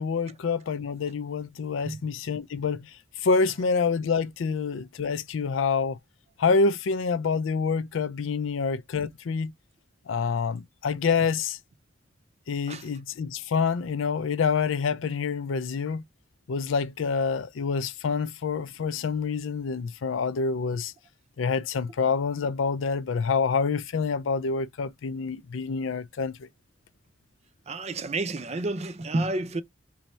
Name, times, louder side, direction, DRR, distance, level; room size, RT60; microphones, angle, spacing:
voice 1, 0.0-2.9 3.2-6.0 6.4-9.5 10.1-11.6 12.5-16.0 16.5-20.9 21.4-26.3, left 5 dB, 85° left, 0.4 m, -27 dB
voice 2, 27.7-29.6, right 2 dB, 35° right, 0.5 m, -30 dB
3.2 x 2.7 x 4.3 m
head